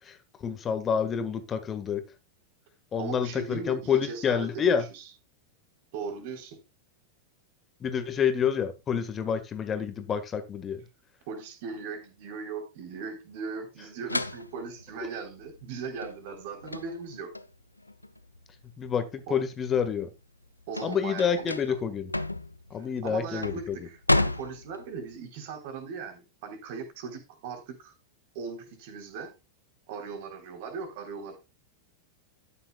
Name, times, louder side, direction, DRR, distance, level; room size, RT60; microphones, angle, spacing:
voice 1, 0.0-2.0 2.9-4.8 7.8-10.8 18.8-20.1 20.8-22.1 22.7-23.8, left 7 dB, 25° left, 1.6 m, -28 dB
voice 2, 3.0-4.7 4.9-5.0 5.9-6.6 11.3-17.3 19.3-19.4 20.7-21.9 22.7-27.9 28.3-29.3 29.9-31.4, right 5 dB, 50° right, 3.7 m, -39 dB
sound 1, 14.1-19.1 19.5-25.1, left 2 dB, 85° left, 0.6 m, -32 dB
13.0 x 9.6 x 2.3 m
figure-of-eight pair, 90°, 0 cm